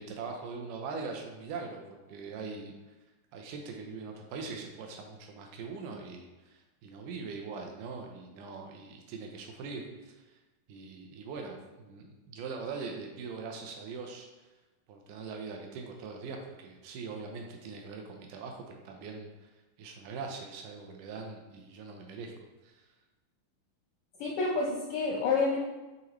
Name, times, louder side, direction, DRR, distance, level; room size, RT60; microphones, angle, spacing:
voice 1, 0.0-2.7 3.3-10.2 10.7-14.3 14.9-19.5 19.8-22.3 22.6-22.8, right 4 dB, 80° right, 2 dB, 1.8 m, -42 dB
voice 2, 24.2-25.6, left 4 dB, 80° left, -3 dB, 1.8 m, -28 dB
8.6 x 3.9 x 3.1 m, 1.1 s
omnidirectional pair, 4.4 m